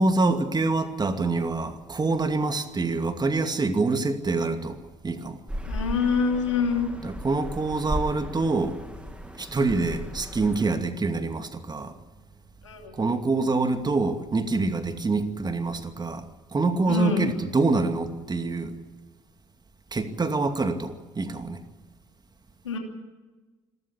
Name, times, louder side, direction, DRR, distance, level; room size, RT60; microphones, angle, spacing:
voice 1, 0.0-5.4 7.0-8.8 9.4-11.9 12.9-16.3 16.5-18.8 19.9-21.6, right 3 dB, 25° right, 8 dB, 2.4 m, -26 dB
sound 1, 5.5-10.7, equal, 5° right, 2.9 m, -36 dB
voice 2, 5.7-6.9 12.6-12.9 16.9-17.3 22.6-22.8, left 6 dB, 90° left, 2 dB, 2.9 m, -25 dB
27.0 x 13.5 x 8.8 m, 1.3 s
hypercardioid pair, 50°, 15 cm